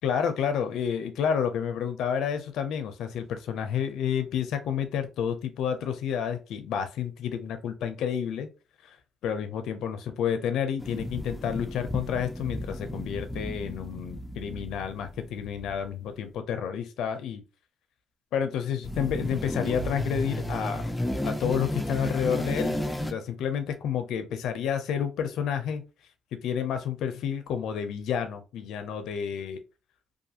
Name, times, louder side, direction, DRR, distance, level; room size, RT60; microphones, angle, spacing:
voice 1, 0.0-8.5 8.8-9.0 9.2-17.4 18.3-20.9 21.2-25.8 26.3-29.6, left 8 dB, 80° left, 0.4 m, -30 dB
sound 1, 10.8-15.8 18.8-23.1, equal, 10° left, 0.5 m, -33 dB
2.4 x 2.4 x 2.7 m
cardioid pair, 90°, 0 cm